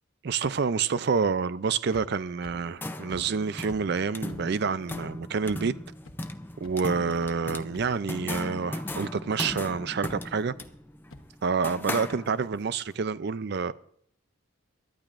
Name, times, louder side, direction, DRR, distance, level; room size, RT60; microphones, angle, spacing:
voice 1, 0.2-5.7 6.6-10.5 11.4-13.7, right 5 dB, 50° right, 0.4 m, -28 dB
sound 1, 1.9-2.0 2.4-2.5 3.1-3.2 3.7-3.8 4.3-4.4 4.9-5.0 5.5-5.6 6.1-6.2 6.6-6.7 7.2-7.3 7.7-8.0 8.3-8.4 8.9-9.0 9.5-9.6 10.0-10.2 10.6-10.7 11.1-11.2, left 2 dB, 75° left, 1.1 m, -46 dB
sound 2, 2.5-12.7, left 1 dB, 10° left, 0.4 m, -38 dB
22.5 x 12.0 x 2.5 m
head